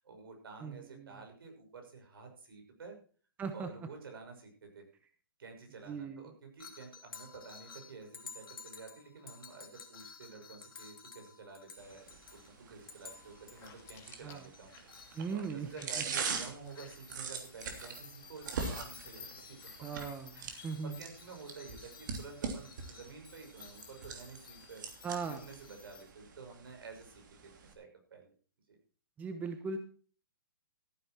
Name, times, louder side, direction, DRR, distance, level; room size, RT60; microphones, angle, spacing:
voice 1, 0.0-3.0 3.5-4.8 5.4-14.7 15.3-19.9 20.3-24.8 25.3-28.3 28.7-28.8, right 4 dB, 75° right, 4 dB, 6.1 m, -51 dB
voice 2, 0.6-1.2 3.4-3.7 5.9-6.3 14.2-14.4 15.1-15.7 16.0-16.1 19.8-21.0 25.0-25.4 29.2-29.8, right 5 dB, 10° right, 8 dB, 1.1 m, -39 dB
sound 1, 6.6-12.5 12.8-15.7 16.1-26.0, left 6 dB, 75° left, 3.1 m, -53 dB
sound 2, 11.5-11.9 12.2-15.4 15.6-17.4 17.7-18.0 18.3-19.0, left 8 dB, 20° left, 2.2 m, -61 dB
sound 3, 11.8-27.7, right 5 dB, 55° right, 3.0 m, -43 dB
14.5 x 9.5 x 4.5 m, 0.41 s
hypercardioid pair, 150°, 12 cm